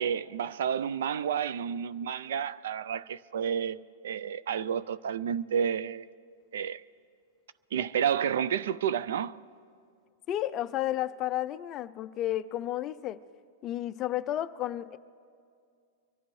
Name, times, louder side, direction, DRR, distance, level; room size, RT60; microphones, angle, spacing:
voice 1, 0.0-6.1 6.5-6.8 7.7-9.3, right 8 dB, 70° right, 0.4 m, -30 dB
voice 2, 10.3-13.2 13.6-15.0, left 13 dB, 25° left, 0.3 m, -32 dB
24.5 x 15.5 x 3.1 m
supercardioid pair, 170°, 0 cm